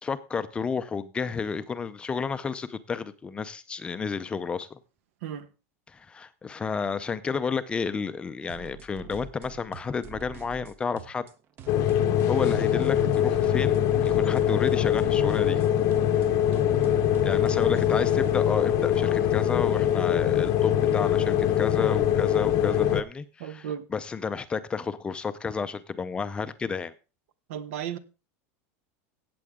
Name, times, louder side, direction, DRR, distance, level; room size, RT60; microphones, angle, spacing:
voice 1, 0.0-4.8 5.9-11.2 12.3-15.6 17.2-26.9, left 5 dB, 15° left, 0.5 m, -31 dB
sound 1, 8.5-18.4, right 7 dB, 30° right, 0.7 m, -45 dB
sound 2, 11.7-23.0, left 10 dB, 45° left, 0.8 m, -23 dB
voice 2, 23.4-23.9 27.5-28.0, right 9 dB, 75° right, 1.2 m, -34 dB
16.5 x 7.7 x 3.6 m
supercardioid pair, 160°, 8 cm